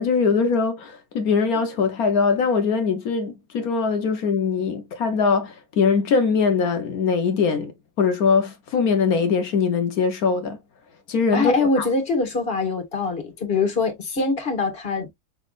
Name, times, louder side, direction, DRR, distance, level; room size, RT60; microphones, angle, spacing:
voice 1, 0.0-7.7 8.0-10.6 11.1-11.9, left 5 dB, 60° left, 1.1 m, -22 dB
voice 2, 11.3-15.1, left 3 dB, 30° left, 1.8 m, -23 dB
6.3 x 3.4 x 2.3 m
omnidirectional pair, 2.2 m